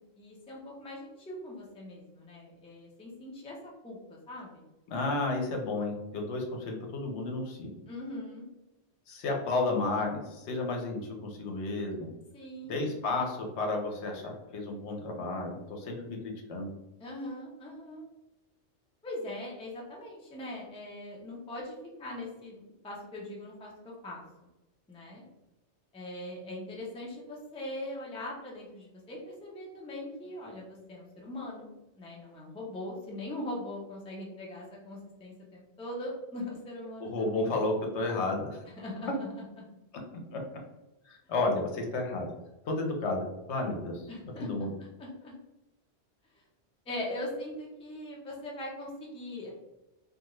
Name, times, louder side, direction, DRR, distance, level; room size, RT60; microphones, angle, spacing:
voice 1, 0.2-3.6 3.8-4.6 7.9-8.5 12.3-12.9 17.0-18.0 19.0-21.7 22.0-24.2 24.9-25.2 25.9-31.7 31.9-37.6 38.8-39.3 44.1-44.5 45.0-45.3 46.9-49.5, left 1 dB, 10° left, -3 dB, 0.3 m, -41 dB
voice 2, 4.9-7.7 9.1-12.1 12.6-16.7 37.0-38.6 40.3-40.4 41.1-42.3 42.6-44.0 44.4-44.7, left 2 dB, 80° left, 1 dB, 0.9 m, -32 dB
2.4 x 2.3 x 2.9 m, 0.98 s
omnidirectional pair, 1.1 m